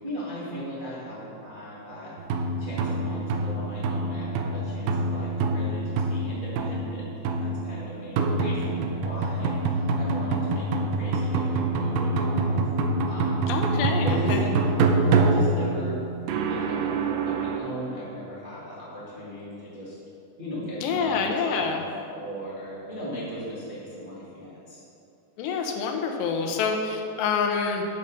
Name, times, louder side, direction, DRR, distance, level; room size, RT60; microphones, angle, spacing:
voice 1, 0.0-12.6 13.0-13.5 14.0-16.0 16.5-20.0 20.4-21.8 22.1-24.8, equal, 50° right, -9 dB, 0.5 m, -37 dB
sound 1, 2.2-17.6, right 3 dB, 80° right, 2.2 m, -26 dB
voice 2, 13.5-14.4 20.8-21.8 25.4-27.8, left 5 dB, 90° left, 3 dB, 3.0 m, -27 dB
9.3 x 5.6 x 6.4 m, 2.8 s
omnidirectional pair, 4.8 m